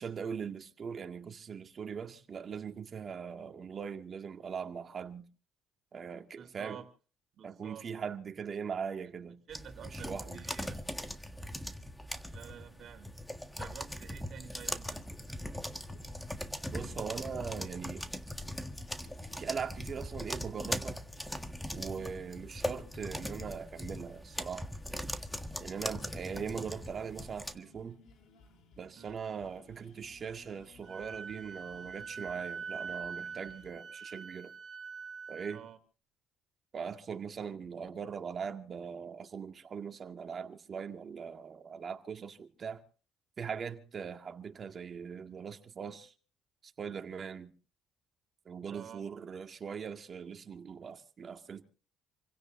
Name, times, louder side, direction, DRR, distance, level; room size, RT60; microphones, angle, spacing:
voice 1, 0.0-5.3 5.9-6.8 7.4-9.4 9.9-10.4 16.7-18.1 19.4-21.0 21.7-24.7 25.6-28.0 28.8-34.5 35.3-35.6 36.7-42.8 43.4-46.1 46.8-47.5 48.5-51.6, right 6 dB, 40° right, 1.9 m, -40 dB
voice 2, 6.4-6.8 7.3-7.9 9.5-10.8 12.3-13.1 13.6-15.0 28.9-29.2 35.5-35.8 48.6-49.0, right 8 dB, 55° right, 3.2 m, -49 dB
sound 1, 9.5-27.5, equal, 5° left, 1.6 m, -40 dB
sound 2, 14.5-33.7, left 3 dB, 75° left, 3.4 m, -61 dB
Wind instrument woodwind instrument, 30.8-35.6, right 6 dB, 25° right, 5.9 m, -43 dB
28.0 x 16.5 x 2.6 m
cardioid pair, 95°, 0 cm